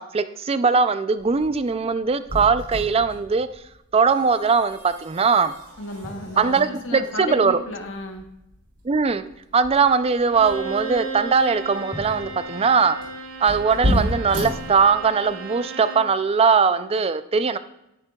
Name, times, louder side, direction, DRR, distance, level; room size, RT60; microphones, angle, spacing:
voice 1, 0.0-3.5 3.9-5.5 6.4-7.6 8.8-9.2 9.5-13.0 13.4-17.6, right 5 dB, 30° right, 12 dB, 0.4 m, -20 dB
sound 1, 1.2-15.3, equal, 85° right, 3.5 m, -33 dB
voice 2, 5.8-8.2, left 1 dB, 60° left, 3 dB, 1.0 m, -33 dB
sound 2, 6.0-8.6 11.9-12.9, equal, 5° left, 0.7 m, -45 dB
Bowed string instrument, 10.2-16.1, right 3 dB, 65° right, 1.2 m, -35 dB
10.0 x 8.7 x 2.3 m, 0.86 s
head